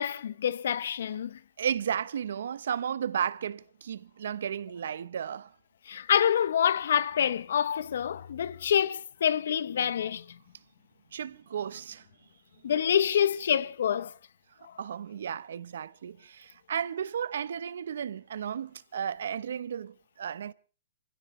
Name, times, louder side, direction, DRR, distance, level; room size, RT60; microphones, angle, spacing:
voice 1, 0.0-1.4 5.9-10.2 12.6-14.1 14.6-14.7, left 9 dB, 60° left, 0.8 m, -27 dB
voice 2, 1.6-5.5 11.1-12.0 14.8-20.5, right 8 dB, 65° right, 0.8 m, -34 dB
26.0 x 16.5 x 3.2 m
hypercardioid pair, 165°, 0 cm